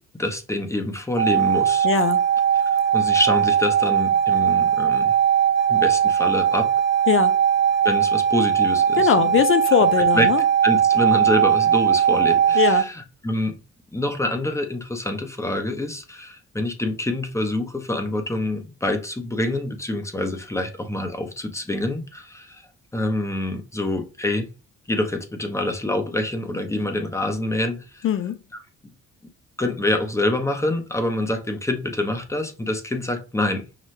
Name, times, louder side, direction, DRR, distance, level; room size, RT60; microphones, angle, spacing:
voice 1, 0.2-1.9 2.9-5.1 5.7-6.7 7.8-9.4 10.1-10.3 10.6-13.6 13.9-22.6 22.9-24.5 24.9-28.1 29.6-33.6, left 1 dB, 10° left, 0.8 m, -26 dB
sound 1, 1.2-12.8, right 8 dB, 40° right, 0.9 m, -19 dB
voice 2, 1.8-2.2 7.1-7.4 8.9-10.4 12.5-12.9 28.0-28.4, left 9 dB, 45° left, 0.4 m, -21 dB
5.8 x 2.2 x 3.2 m
cardioid pair, 90°, 30 cm